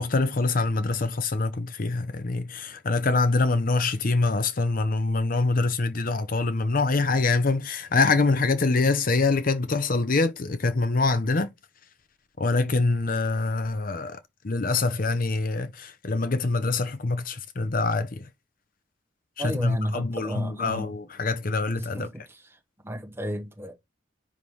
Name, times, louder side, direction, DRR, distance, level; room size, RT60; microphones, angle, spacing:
voice 1, 0.0-11.5 12.4-14.2 14.4-18.3 19.4-22.1, left 3 dB, 45° left, 0.6 m, -25 dB
voice 2, 19.4-20.9 21.9-22.1 22.8-23.7, equal, 10° right, 1.4 m, -32 dB
7.1 x 5.5 x 3.2 m
head